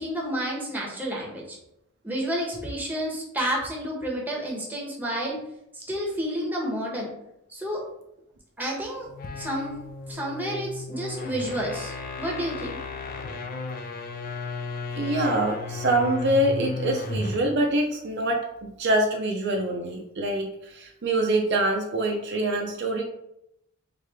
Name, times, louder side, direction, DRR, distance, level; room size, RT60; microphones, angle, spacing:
voice 1, 0.0-1.6 2.0-5.4 5.7-7.1 7.5-7.8 8.6-9.1 9.4-9.8 10.1-12.8, equal, 10° right, -2 dB, 1.0 m, -30 dB
sound 1, 9.1-17.6, left 3 dB, 45° left, 0.4 m, -34 dB
voice 2, 15.0-18.5 18.8-23.0, right 1 dB, 55° right, 2 dB, 0.5 m, -25 dB
3.7 x 3.2 x 3.3 m, 0.80 s
head